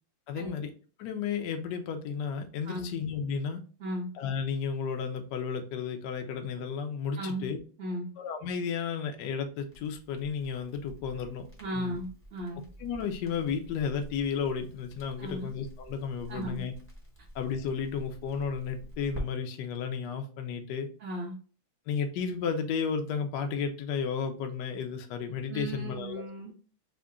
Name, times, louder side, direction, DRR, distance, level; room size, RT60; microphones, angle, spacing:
voice 1, 0.3-0.7 1.0-3.6 4.1-7.6 8.2-11.5 11.7-12.0 12.8-16.7 17.3-20.9 21.9-26.2, left 6 dB, 70° left, 6 dB, 1.1 m, -33 dB
voice 2, 7.1-7.5 7.8-8.1 11.6-12.6 15.2-15.5 16.3-16.6 21.0-21.3 25.5-26.5, right 1 dB, 55° right, -4 dB, 0.8 m, -36 dB
Crackle, 9.7-19.2, right 1 dB, 10° left, 0.7 m, -47 dB
3.7 x 2.1 x 3.5 m, 0.38 s
omnidirectional pair, 2.2 m